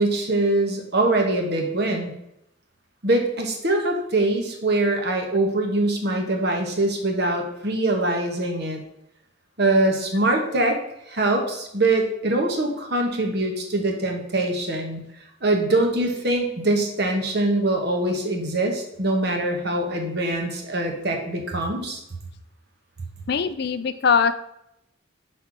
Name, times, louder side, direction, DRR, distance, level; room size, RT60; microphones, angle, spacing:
voice 1, 0.0-2.1 3.0-8.8 9.6-10.8 11.1-15.0 15.4-22.0, right 2 dB, 55° right, 2 dB, 1.3 m, -23 dB
voice 2, 23.3-24.3, left 6 dB, 50° left, 12 dB, 0.4 m, -21 dB
5.8 x 4.4 x 6.0 m, 0.82 s
head